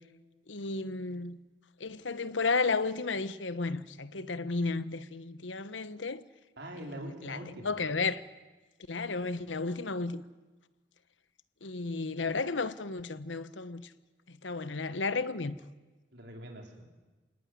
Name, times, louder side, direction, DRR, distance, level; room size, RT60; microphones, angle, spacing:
voice 1, 0.5-1.4 1.8-6.2 6.8-6.9 7.2-7.4 7.6-8.2 8.9-10.2 11.6-13.9 14.4-15.6, left 3 dB, 85° left, 1.1 m, -33 dB
voice 2, 6.6-7.8 16.1-16.8, right 1 dB, 60° right, 4.7 m, -43 dB
27.5 x 19.0 x 9.6 m
head